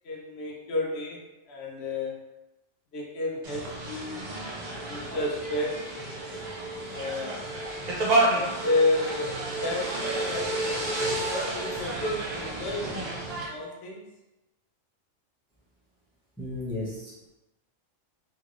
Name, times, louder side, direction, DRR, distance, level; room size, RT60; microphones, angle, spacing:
voice 1, 0.0-1.2 1.5-2.2 2.9-4.3 4.7-5.9 6.9-7.4 8.1-14.0, left 2 dB, 65° left, -2 dB, 0.9 m, -31 dB
sound 1, 3.4-13.5, right 2 dB, 45° right, 0.6 m, -30 dB
voice 2, 16.4-17.3, left 2 dB, 5° left, -7 dB, 0.5 m, -34 dB
3.0 x 2.7 x 2.5 m, 1.0 s
omnidirectional pair, 1.2 m